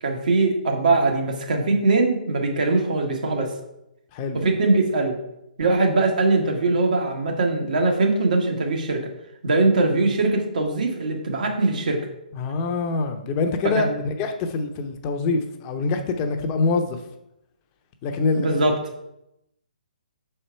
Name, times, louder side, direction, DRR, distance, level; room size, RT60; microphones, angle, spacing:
voice 1, 0.0-3.5 4.3-5.2 5.6-9.1 9.4-12.1 13.6-14.0 18.3-18.8, right 3 dB, 60° right, 2 dB, 1.4 m, -21 dB
voice 2, 12.3-17.0 18.0-18.6, left 4 dB, 25° left, 5 dB, 0.7 m, -25 dB
6.4 x 4.5 x 4.5 m, 0.85 s
figure-of-eight pair, 140°, 5 cm